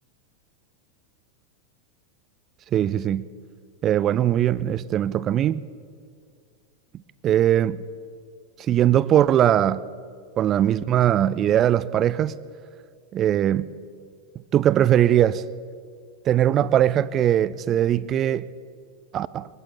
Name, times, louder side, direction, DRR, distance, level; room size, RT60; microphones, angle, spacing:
voice 1, 2.7-3.3 3.8-5.6 7.2-7.8 8.7-9.8 10.4-12.3 13.1-13.7 14.5-15.4 16.3-18.5 19.1-19.5, right 11 dB, 30° right, 18 dB, 0.5 m, -20 dB
21.0 x 15.0 x 8.3 m, 2.2 s
figure-of-eight pair, 90°, 0 cm